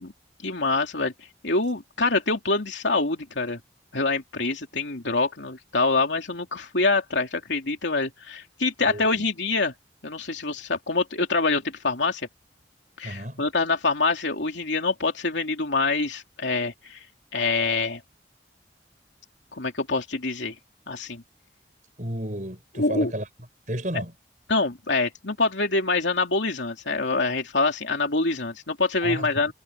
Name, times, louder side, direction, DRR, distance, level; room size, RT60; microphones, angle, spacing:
voice 1, 0.4-1.1 1.4-3.6 3.9-9.7 10.0-12.3 13.0-17.0 17.3-18.0 19.5-20.5 20.9-21.2 22.8-23.1 24.5-29.5, left 3 dB, 85° left, 3.0 m, -25 dB
voice 2, 8.8-9.2 13.0-13.4 22.0-23.3 23.7-24.1 29.0-29.3, right 1 dB, 45° right, 6.2 m, -32 dB
head